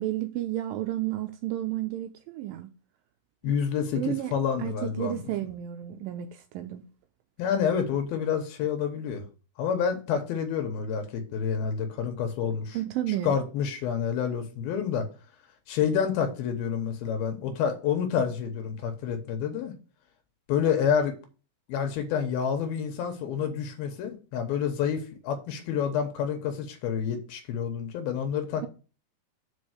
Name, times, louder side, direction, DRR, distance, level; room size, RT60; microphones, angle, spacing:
voice 1, 0.0-2.7 3.5-3.6 3.9-4.3 4.6-6.8 12.7-13.3, right 13 dB, 85° right, 2.0 m, -32 dB
voice 2, 3.4-5.2 7.4-9.3 9.6-12.8 13.1-15.1 15.7-19.8 20.5-21.2 21.7-28.7, left 7 dB, 75° left, 2.7 m, -28 dB
5.3 x 5.3 x 6.5 m
omnidirectional pair, 4.6 m